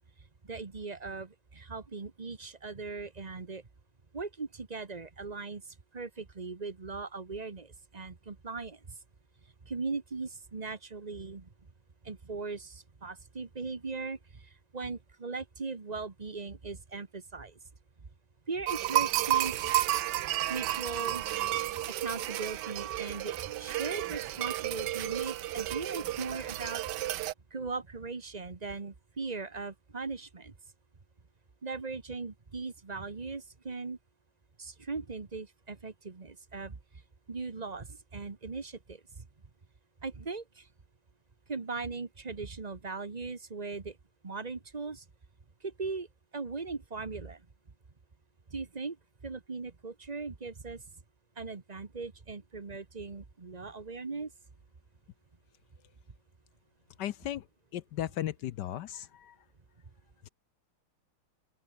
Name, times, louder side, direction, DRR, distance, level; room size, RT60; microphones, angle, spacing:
voice 1, 0.4-3.6 4.1-5.6 5.9-8.8 9.6-11.5 12.0-17.6 18.5-19.7 20.5-21.2 22.0-26.8 27.5-30.5 31.6-34.0 34.6-36.8 37.3-39.2 40.0-40.7 41.5-44.0 44.2-45.0 45.6-46.1 46.3-47.4 48.5-49.0 49.2-50.8 51.4-54.3, right 4 dB, 25° right, 1.1 m, -39 dB
sound 1, 18.7-27.3, right 14 dB, 70° right, 1.1 m, -32 dB
voice 2, 57.0-57.5 57.7-59.4 60.2-60.3, left 12 dB, 65° left, 1.1 m, -36 dB
open air
omnidirectional pair, 2.3 m